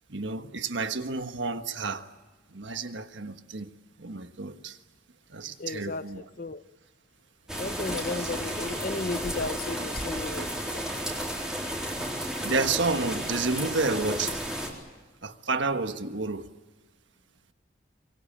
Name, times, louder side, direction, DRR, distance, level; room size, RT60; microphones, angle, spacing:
voice 1, 0.1-2.1 2.5-3.7 4.0-4.8 5.3-6.2 7.8-8.3 12.0-14.4 15.2-16.5, right 3 dB, 85° right, 1.5 m, -31 dB
voice 2, 5.6-6.6 7.5-10.8, left 3 dB, 50° left, 0.7 m, -34 dB
sound 1, 7.5-14.7, equal, 5° right, 4.0 m, -33 dB
25.5 x 23.0 x 8.7 m
head